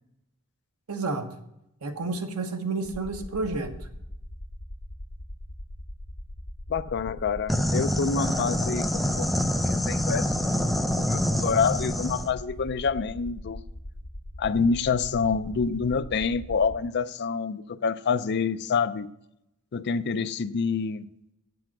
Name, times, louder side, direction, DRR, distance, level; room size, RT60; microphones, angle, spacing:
voice 1, 0.9-1.3 1.8-3.7, right 3 dB, 85° right, 1.3 m, -30 dB
sound 1, 2.8-16.8, left 1 dB, 70° left, 1.2 m, -40 dB
voice 2, 6.7-9.3 9.9-10.3 11.1-13.6 14.4-19.1 19.7-21.1, left 5 dB, 50° left, 0.5 m, -27 dB
sound 2, 7.5-12.3, equal, ahead, 0.5 m, -26 dB
8.7 x 7.9 x 6.0 m
head